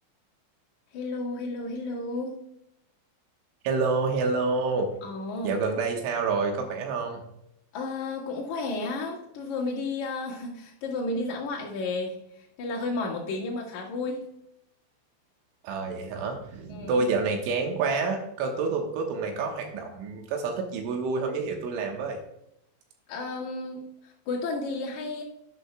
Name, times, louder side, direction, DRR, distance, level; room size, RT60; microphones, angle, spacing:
voice 1, 0.9-2.5 5.0-5.6 7.7-14.3 16.7-17.1 23.1-25.2, left 3 dB, 50° left, -4 dB, 2.5 m, -32 dB
voice 2, 3.7-4.9 5.4-7.2 15.6-22.2, right 4 dB, 75° right, 2 dB, 3.6 m, -28 dB
11.5 x 9.7 x 2.3 m, 0.79 s
omnidirectional pair, 5.8 m